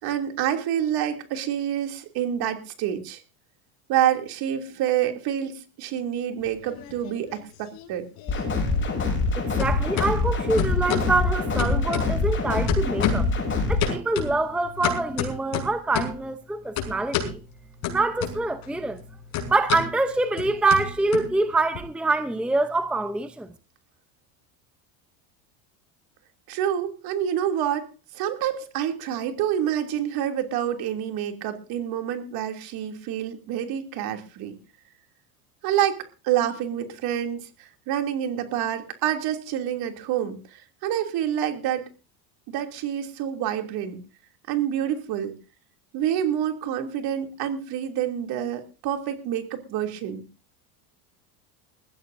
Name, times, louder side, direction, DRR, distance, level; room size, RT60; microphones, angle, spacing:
voice 1, 0.0-3.2 3.9-8.1 26.5-34.5 35.6-41.9 42.5-44.0 44.5-45.3 45.9-50.2, right 10 dB, 55° right, 3.0 m, -27 dB
sound 1, 6.4-7.4 7.7-9.3 9.6-10.1 10.6-11.1 11.6-12.4 12.7-13.4 13.8-16.2 16.8-17.4 17.8-18.7 18.9-21.8, left 7 dB, 55° left, 5.8 m, -30 dB
sound 2, 8.3-13.9, left 3 dB, 25° left, 7.0 m, -25 dB
voice 2, 9.3-13.3 13.7-17.4 17.9-19.0 19.5-23.5, right 3 dB, ahead, 0.8 m, -25 dB
21.5 x 15.0 x 2.7 m
supercardioid pair, 130°, 44 cm